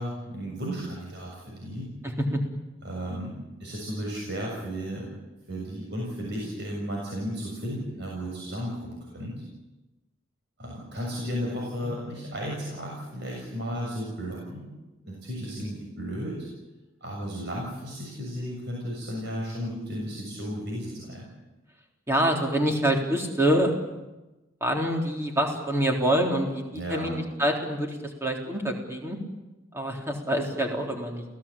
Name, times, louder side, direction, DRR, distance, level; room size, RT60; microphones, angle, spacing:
voice 1, 0.0-1.9 2.8-5.1 5.5-9.3 10.6-14.7 15.0-16.5 17.0-21.3 26.7-27.2, equal, 55° right, -2 dB, 7.0 m, -34 dB
voice 2, 2.0-2.4 11.8-11.9 22.1-24.0 24.6-29.2 29.7-31.2, right 1 dB, 15° right, 1 dB, 3.7 m, -26 dB
29.0 x 17.0 x 8.8 m, 1.1 s
head